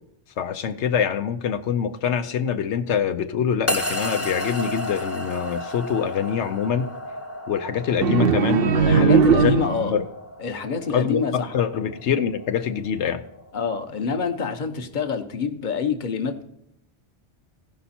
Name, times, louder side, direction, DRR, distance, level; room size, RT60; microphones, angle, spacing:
voice 1, 0.4-6.9 7.5-10.0 10.9-13.2, left 8 dB, 90° left, 7 dB, 1.0 m, -25 dB
sound 1, 3.7-14.0, left 1 dB, 15° left, 0.7 m, -33 dB
sound 2, 8.0-10.1, right 6 dB, 65° right, 0.7 m, -19 dB
voice 2, 8.9-9.9 10.4-11.6 13.5-16.4, left 5 dB, 45° left, 6 dB, 1.0 m, -26 dB
16.0 x 5.6 x 4.2 m, 0.75 s
omnidirectional pair, 1.1 m